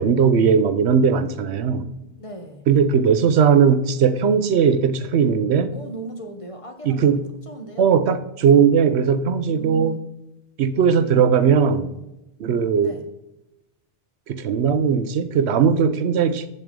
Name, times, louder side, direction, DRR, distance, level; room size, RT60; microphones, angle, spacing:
voice 1, 0.0-1.9 2.7-5.7 6.8-7.2 7.8-10.0 10.6-11.9 12.4-12.9 14.3-16.5, right 6 dB, 75° right, 12 dB, 0.9 m, -18 dB
voice 2, 2.2-2.7 5.7-7.1 7.4-7.9 9.4-10.1 12.8-13.0, right 2 dB, 35° left, 4 dB, 0.8 m, -37 dB
7.7 x 6.6 x 3.7 m, 0.91 s
omnidirectional pair, 1.1 m